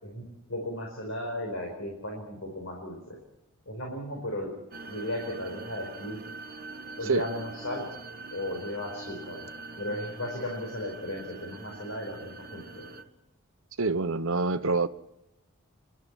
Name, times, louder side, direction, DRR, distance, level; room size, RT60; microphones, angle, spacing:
voice 1, 0.0-3.2 3.7-4.5 4.8-6.2 7.0-7.9 8.3-9.5 9.8-12.9, left 1 dB, 70° left, 4.8 m, -35 dB
sound 1, 4.7-13.0, right 3 dB, 40° right, 1.4 m, -43 dB
voice 2, 13.8-14.9, right 3 dB, 65° right, 0.9 m, -26 dB
28.0 x 12.5 x 9.0 m
head